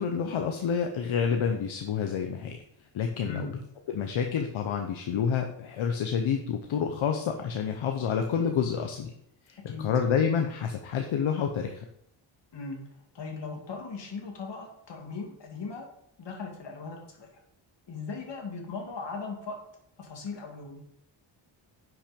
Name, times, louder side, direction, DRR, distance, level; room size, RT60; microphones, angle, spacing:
voice 1, 0.0-2.6 2.9-3.5 3.9-9.1 9.5-11.8, left 7 dB, 75° left, 4 dB, 1.1 m, -28 dB
voice 2, 3.2-3.5 9.7-9.9 12.5-12.8 13.1-15.9 16.2-17.3 17.9-19.5 20.0-20.8, left 4 dB, 60° left, 1 dB, 2.6 m, -38 dB
9.9 x 6.2 x 5.3 m, 0.72 s
wide cardioid pair, 120°, 48 cm